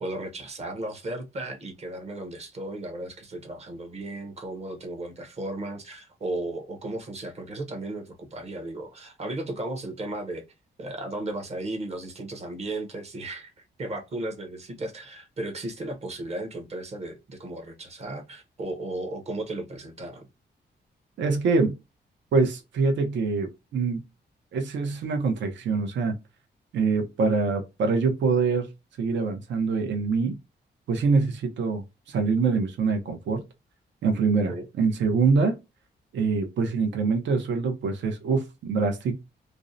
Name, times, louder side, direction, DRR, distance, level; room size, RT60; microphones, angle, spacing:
voice 1, 0.0-10.4 10.8-13.5 13.8-20.3 34.4-34.7, right 2 dB, 35° right, 0.6 m, -35 dB
voice 2, 21.2-21.7 22.3-24.0 24.5-26.2 26.7-28.7 29.0-30.4 30.9-33.4 34.0-35.6 36.1-39.2, right 4 dB, 90° right, 0.6 m, -24 dB
2.5 x 2.0 x 2.5 m
wide cardioid pair, 150°, 18 cm